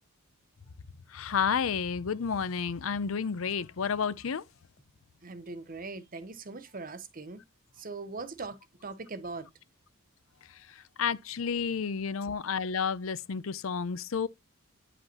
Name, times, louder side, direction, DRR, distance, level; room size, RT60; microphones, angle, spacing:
voice 1, 1.1-4.4 10.5-14.3, left 6 dB, 70° left, 0.6 m, -31 dB
voice 2, 5.2-7.4 7.8-9.5, right 3 dB, 40° right, 0.8 m, -41 dB
9.5 x 5.0 x 2.9 m
head